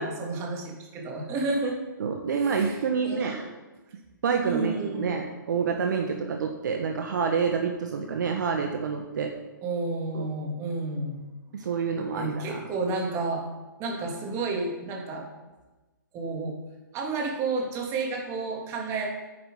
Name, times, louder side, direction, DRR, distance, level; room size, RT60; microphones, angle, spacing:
voice 1, 0.0-1.8 2.3-3.5 4.4-5.2 9.6-11.3 12.1-13.4 13.8-15.3 16.1-16.6 16.9-19.1, right 3 dB, 25° right, 0 dB, 2.9 m, -31 dB
voice 2, 2.0-3.3 4.2-9.3 10.1-10.3 11.5-12.6, right 6 dB, 60° right, 3 dB, 1.4 m, -28 dB
10.0 x 9.3 x 5.5 m, 1.1 s
hypercardioid pair, 135°, 11 cm